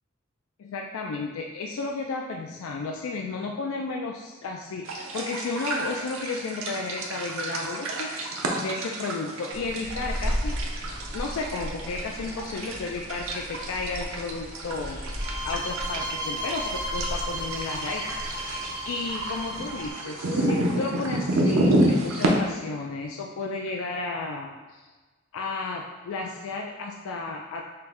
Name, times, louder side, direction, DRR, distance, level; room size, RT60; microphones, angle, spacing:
voice 1, 0.6-10.6 11.1-15.0 15.4-18.6 18.8-24.8 25.3-27.7, left 3 dB, 80° left, 1 dB, 0.3 m, -33 dB
sound 1, 4.9-22.3, right 1 dB, 80° right, 0.6 m, -30 dB
sound 2, 9.5-19.9, equal, 45° left, 0.7 m, -36 dB
sound 3, 15.2-20.1, equal, 20° right, 0.3 m, -34 dB
5.6 x 2.1 x 3.5 m, 1.3 s
head